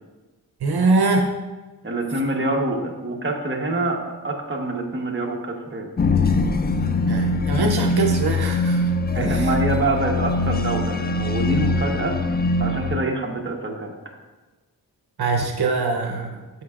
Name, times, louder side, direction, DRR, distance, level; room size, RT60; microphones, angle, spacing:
voice 1, 0.6-1.4 7.1-9.6 15.2-16.4, right 3 dB, 75° right, 3 dB, 0.7 m, -23 dB
voice 2, 1.8-4.0 4.2-5.9 9.1-12.2 12.6-13.9, right 2 dB, 30° right, 0 dB, 1.1 m, -25 dB
sound 1, 6.0-13.0, left 2 dB, 25° left, 0.4 m, -22 dB
13.0 x 5.5 x 2.4 m, 1.2 s
wide cardioid pair, 100°, 38 cm